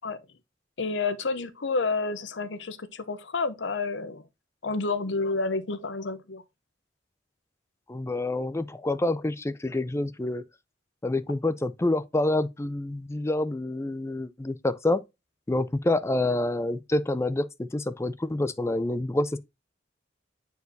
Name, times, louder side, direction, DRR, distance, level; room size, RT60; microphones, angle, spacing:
voice 1, 0.8-4.3 4.6-6.4, left 3 dB, 70° left, 0.8 m, -29 dB
voice 2, 7.9-10.4 11.0-15.0 15.5-19.4, left 2 dB, 15° left, 0.4 m, -27 dB
8.2 x 4.6 x 2.7 m
head